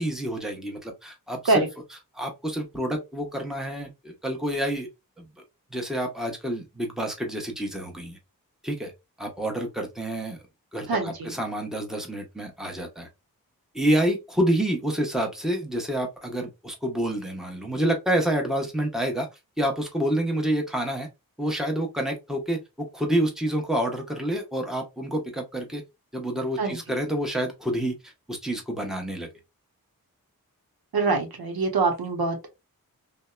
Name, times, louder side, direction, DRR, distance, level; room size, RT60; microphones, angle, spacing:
voice 1, 0.0-1.6 2.1-4.9 5.2-5.3 5.7-8.2 8.6-8.9 9.2-10.4 10.7-13.1 13.7-19.3 19.6-21.1 21.4-25.8 26.1-27.9 28.3-29.3, right 1 dB, ahead, 0.9 m, -28 dB
voice 2, 10.9-11.3 26.6-26.8 30.9-32.5, right 3 dB, 80° right, 0.7 m, -24 dB
2.7 x 2.1 x 2.2 m
cardioid pair, 40°, 36 cm